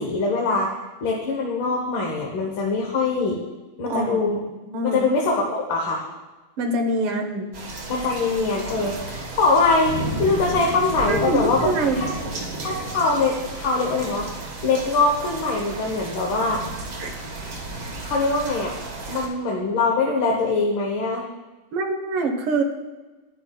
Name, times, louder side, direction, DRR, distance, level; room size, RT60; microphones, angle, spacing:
voice 1, 0.0-3.4 3.8-4.4 4.8-6.0 7.9-12.1 12.6-14.3 14.6-16.6 18.0-18.7 19.1-21.2, left 3 dB, 70° left, -1 dB, 1.7 m, -23 dB
voice 2, 3.9-4.3 4.7-5.1 6.6-7.5 11.1-12.0 17.0-17.1 21.7-22.6, right 2 dB, 90° right, 4 dB, 1.8 m, -24 dB
sound 1, 7.5-19.3, right 2 dB, 55° right, 1.8 m, -33 dB
10.5 x 10.0 x 2.2 m, 1.2 s
omnidirectional pair, 2.3 m